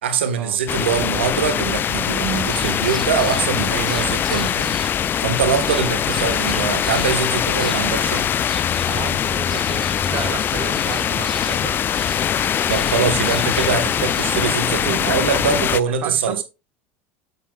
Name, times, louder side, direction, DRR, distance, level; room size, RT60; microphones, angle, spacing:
voice 1, 0.0-8.3 12.7-16.4, right 6 dB, 85° right, 1.2 m, -23 dB
sound 1, 0.7-15.8, left 9 dB, 35° left, 0.4 m, -22 dB
sound 2, 2.2-14.5, equal, ahead, 1.0 m, -38 dB
Waves surf, 4.1-7.4, right 5 dB, 65° right, 5.5 m, -44 dB
voice 2, 8.9-11.7 15.9-16.4, right 9 dB, 45° right, 1.2 m, -32 dB
8.9 x 7.9 x 2.3 m
hypercardioid pair, 85°, 6 cm